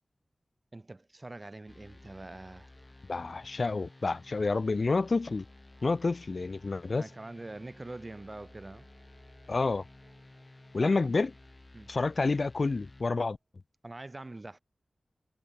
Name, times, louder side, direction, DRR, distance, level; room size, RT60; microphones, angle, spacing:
voice 1, 0.7-2.7 7.0-8.9 10.8-11.0 11.7-11.9 13.8-14.6, right 2 dB, 30° right, 0.4 m, -44 dB
sound 1, 1.6-13.4, right 4 dB, 70° right, 7.9 m, -68 dB
sound 2, 1.7-13.0, left 2 dB, 30° left, 3.8 m, -54 dB
voice 2, 3.1-5.5 5.8-7.1 9.5-9.8 10.7-11.3 11.9-13.4, left 3 dB, 55° left, 0.3 m, -29 dB
wide cardioid pair, 85°, 0 cm